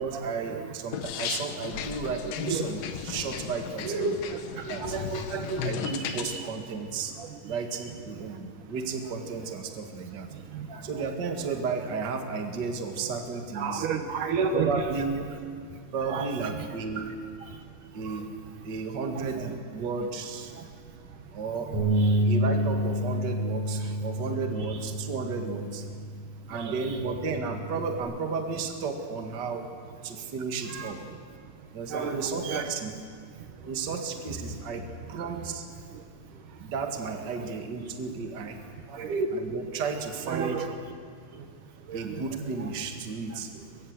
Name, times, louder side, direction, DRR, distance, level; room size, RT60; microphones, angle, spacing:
voice 1, 0.0-4.2 4.7-5.0 5.6-7.1 7.4-10.3 10.8-13.9 14.5-15.3 15.9-17.2 17.9-18.3 18.6-20.5 21.3-21.7 22.2-25.8 26.5-29.7 30.0-31.0 31.7-32.9 33.7-35.7 36.6-38.6 39.3-40.7 41.9-43.5, right 4 dB, 40° right, 4 dB, 2.0 m, -33 dB
sound 1, 0.9-6.4, left 9 dB, 80° left, 2.8 m, -36 dB
voice 2, 2.2-2.8 3.8-6.5 7.2-7.3 10.3-11.0 13.5-14.7 16.1-16.3 17.0-17.1 17.5-17.6 18.1-18.2 19.1-19.5 20.5-20.7 22.0-22.3 26.5-27.0 30.7-30.9 31.9-32.7 33.6-33.7 35.9-36.0 37.4-37.5 38.9-39.3 40.3-41.0 41.3-41.5 41.9-42.2 43.3-43.6, right 5 dB, 70° right, 6 dB, 2.6 m, -33 dB
Bass guitar, 21.7-28.0, equal, 55° right, 6.9 m, -29 dB
23.5 x 22.0 x 7.9 m, 2.2 s
omnidirectional pair, 4.0 m